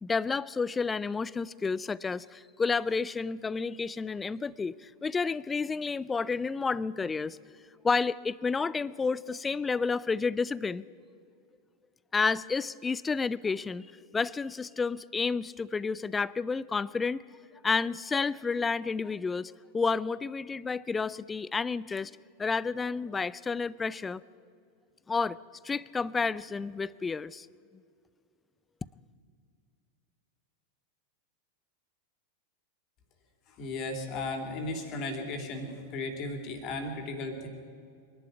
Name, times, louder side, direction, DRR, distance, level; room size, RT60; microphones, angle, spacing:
voice 1, 0.0-7.4 7.8-10.8 12.1-13.9 14.1-17.2 17.6-22.1 22.4-24.2 25.1-25.4 25.6-27.5, left 4 dB, 15° left, 21 dB, 0.4 m, -30 dB
voice 2, 33.5-37.5, left 2 dB, 35° left, 5 dB, 3.1 m, -35 dB
24.5 x 11.5 x 9.5 m, 2.3 s
figure-of-eight pair, 90°, 0 cm